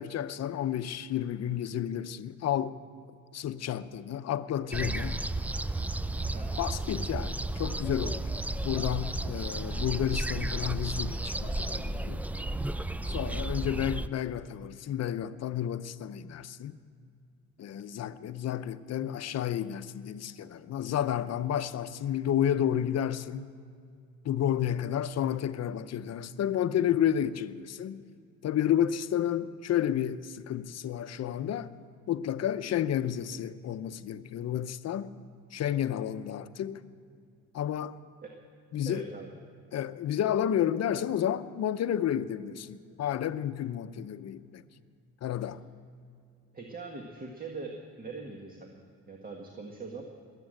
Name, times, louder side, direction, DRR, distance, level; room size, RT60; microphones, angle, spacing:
voice 1, 0.0-2.8 3.3-5.2 6.6-8.2 8.6-12.2 13.1-16.8 17.6-23.5 24.2-28.1 28.4-31.7 32.1-35.1 35.5-36.8 37.5-38.0 38.7-39.1 39.7-44.6 45.2-45.6, left 10 dB, 60° left, 0.7 m, -31 dB
sound 1, 4.7-14.1, right 2 dB, 5° right, 0.3 m, -33 dB
voice 2, 6.2-6.6 13.1-13.4 38.2-38.3 38.8-39.3 46.5-48.7 49.1-50.0, right 3 dB, 30° right, 1.7 m, -42 dB
21.0 x 8.3 x 7.8 m
cardioid pair, 90°, 30 cm